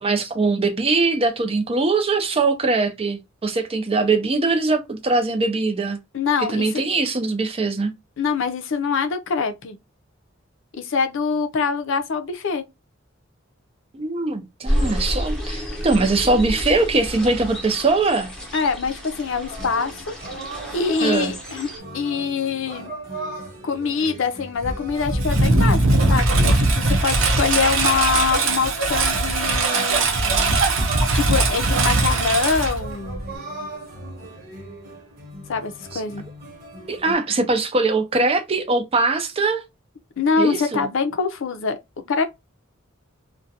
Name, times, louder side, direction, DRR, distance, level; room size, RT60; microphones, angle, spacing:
voice 1, 0.0-6.0 6.5-7.9 13.9-18.3 21.0-21.3 35.9-36.0 36.9-39.6 40.4-40.9, right 3 dB, 30° right, 0.5 m, -21 dB
voice 2, 6.1-6.8 8.2-9.8 10.7-12.6 18.5-20.2 20.7-22.9 23.6-30.5 31.1-33.2 35.5-36.2 40.2-41.8 42.1-42.2, left 5 dB, 70° left, 0.5 m, -24 dB
sound 1, 14.7-21.8, equal, 5° left, 0.8 m, -29 dB
sound 2, 19.4-37.2, right 1 dB, 50° right, 1.1 m, -38 dB
Engine, 24.6-33.4, right 2 dB, 75° right, 0.6 m, -20 dB
2.4 x 2.2 x 2.7 m
head